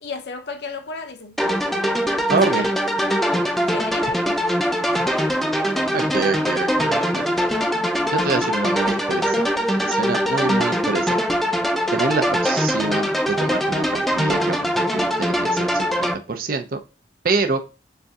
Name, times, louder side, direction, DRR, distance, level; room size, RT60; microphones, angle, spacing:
voice 1, 0.0-1.4 2.5-2.7 3.7-4.2, left 3 dB, 65° left, 0.7 m, -33 dB
sound 1, 1.4-16.1, equal, ahead, 0.3 m, -22 dB
voice 2, 2.3-2.7 4.2-4.3 5.9-7.3 8.1-9.4 9.7-11.2 11.9-16.8 17.2-17.6, right 3 dB, 50° right, 0.5 m, -26 dB
6.5 x 2.6 x 2.3 m
head